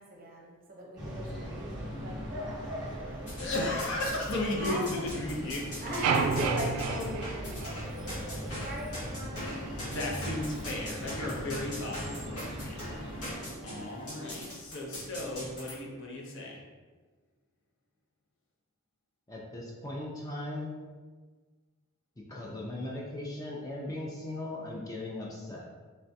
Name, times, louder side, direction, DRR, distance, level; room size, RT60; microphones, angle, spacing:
voice 1, 0.0-3.3 3.6-3.8 4.6-5.3 5.8-9.7, right 1 dB, 40° right, -1 dB, 0.6 m, -39 dB
sound 1, 1.0-13.3, equal, 15° right, 0.9 m, -40 dB
sound 2, 3.3-4.3 4.6-15.7, equal, 85° left, 1.3 m, -41 dB
voice 2, 3.3-5.9 9.8-12.7 13.6-16.6, left 1 dB, 55° left, -1 dB, 0.6 m, -35 dB
sound 3, 6.0-8.3, right 5 dB, 85° right, 0.3 m, -30 dB
voice 3, 19.3-20.8 22.3-25.7, left 1 dB, 15° left, -4 dB, 0.4 m, -38 dB
3.4 x 3.3 x 2.7 m, 1.4 s
head